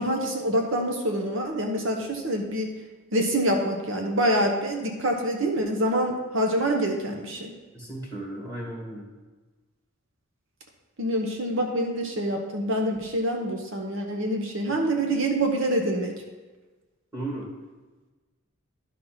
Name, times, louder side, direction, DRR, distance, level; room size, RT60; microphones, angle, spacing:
voice 1, 0.0-2.7 3.1-7.5 11.0-16.1, right 1 dB, 65° right, 2 dB, 0.9 m, -26 dB
voice 2, 7.7-9.1 17.1-17.5, right 1 dB, 15° right, -3 dB, 1.7 m, -35 dB
11.0 x 4.2 x 5.8 m, 1.3 s
head